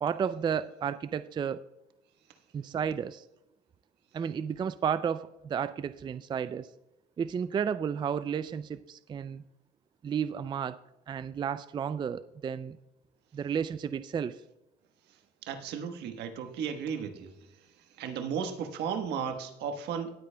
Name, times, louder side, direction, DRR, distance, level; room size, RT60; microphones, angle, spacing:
voice 1, 0.0-1.6 2.5-3.2 4.1-6.7 7.2-9.4 10.0-10.8 11.1-12.8 13.3-14.4, right 7 dB, 25° right, 14 dB, 0.3 m, -32 dB
voice 2, 15.4-17.3 18.0-20.2, right 7 dB, 80° right, 7 dB, 1.3 m, -34 dB
18.5 x 8.5 x 2.2 m, 0.94 s
cardioid pair, 110°, 17 cm